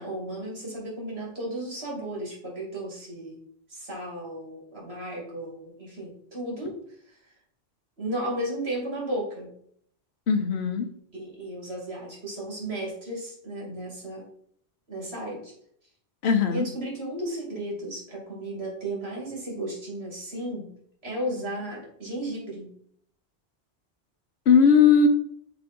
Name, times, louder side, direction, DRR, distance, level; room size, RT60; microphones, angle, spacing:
voice 1, 0.0-3.4 3.7-6.8 7.0-7.3 8.0-9.5 11.1-14.3 14.9-15.5 16.5-20.7 21.0-22.7, right 1 dB, 75° right, -3 dB, 2.7 m, -34 dB
voice 2, 10.3-10.9 16.2-16.7 24.5-25.1, left 6 dB, 80° left, 6 dB, 1.1 m, -18 dB
6.9 x 3.6 x 5.2 m, 0.66 s
omnidirectional pair, 1.1 m